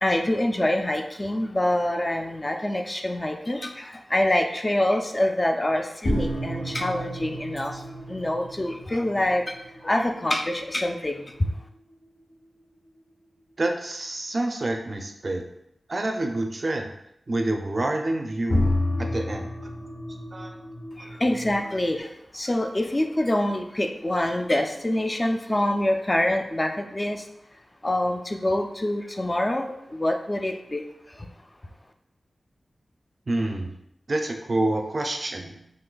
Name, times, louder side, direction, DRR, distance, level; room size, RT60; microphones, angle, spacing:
voice 1, 0.0-7.8 8.1-9.6 9.8-11.2 21.0-22.1 22.3-27.2 27.8-30.8, left 1 dB, 25° left, 5 dB, 0.3 m, -25 dB
sound 1, 6.0-12.8 18.5-22.0, left 1 dB, 85° left, 0.9 m, -31 dB
voice 2, 13.6-15.4 15.9-16.9 17.3-18.7 19.1-19.5 20.3-20.5 33.3-33.7 34.1-35.6, right 2 dB, 50° right, 3 dB, 0.4 m, -27 dB
3.8 x 2.6 x 2.2 m, 0.78 s
cardioid pair, 55°, 0 cm